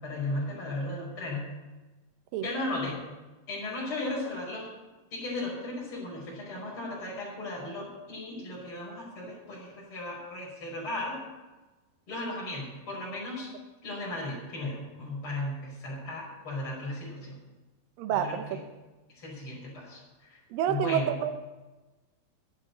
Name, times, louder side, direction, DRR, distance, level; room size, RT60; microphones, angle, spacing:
voice 1, 0.0-1.4 2.4-3.0 3.5-4.7 5.1-11.2 12.1-13.5 13.8-17.4 18.2-18.6 19.2-20.4 20.7-21.0, left 2 dB, 35° left, -5 dB, 6.0 m, -36 dB
voice 2, 18.0-18.4 20.5-21.4, right 9 dB, 75° right, 8 dB, 2.4 m, -28 dB
11.0 x 8.9 x 9.4 m, 1.2 s
omnidirectional pair, 4.2 m